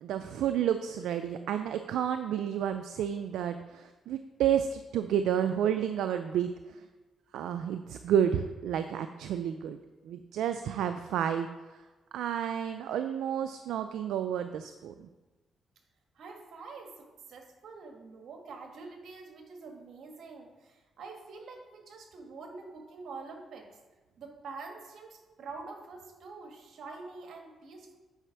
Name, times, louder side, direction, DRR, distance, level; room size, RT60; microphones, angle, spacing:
voice 1, 0.0-6.5 7.3-9.8 10.0-11.5 12.1-15.1, right 9 dB, 90° right, 8 dB, 0.3 m, -30 dB
voice 2, 16.1-23.8 24.2-28.0, right 4 dB, 75° right, 3 dB, 1.4 m, -46 dB
9.0 x 5.1 x 4.7 m, 1.2 s
cardioid pair, 80°, 0 cm